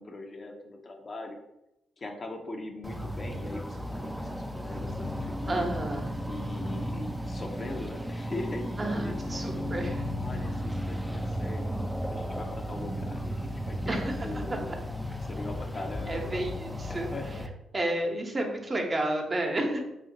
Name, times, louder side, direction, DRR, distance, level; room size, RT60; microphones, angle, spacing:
voice 1, 0.0-1.4 2.0-5.7 6.2-9.7 10.2-11.6 12.1-14.7 15.3-16.4 16.9-17.3, left 2 dB, 40° left, 3 dB, 0.6 m, -40 dB
sound 1, 2.8-17.5, equal, 5° right, 0.5 m, -34 dB
voice 2, 5.5-6.1 8.8-10.0 13.9-14.6 16.1-17.1 17.7-19.8, right 1 dB, 35° right, 2 dB, 0.9 m, -31 dB
4.0 x 2.8 x 2.7 m, 0.88 s
hypercardioid pair, 40°, 0 cm